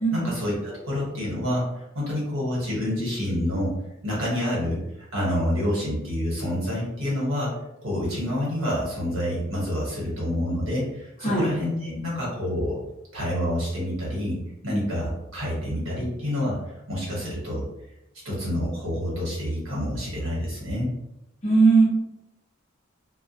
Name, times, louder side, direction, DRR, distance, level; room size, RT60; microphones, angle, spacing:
voice 1, 0.1-3.7 4.0-4.8 5.1-7.5 7.8-12.8 13.1-14.4 14.6-16.6 16.9-17.7 18.2-20.9, left 1 dB, 90° right, -5 dB, 1.1 m, -28 dB
voice 2, 21.4-21.8, right 3 dB, 35° left, -5 dB, 0.7 m, -18 dB
2.2 x 2.1 x 2.6 m, 0.87 s
head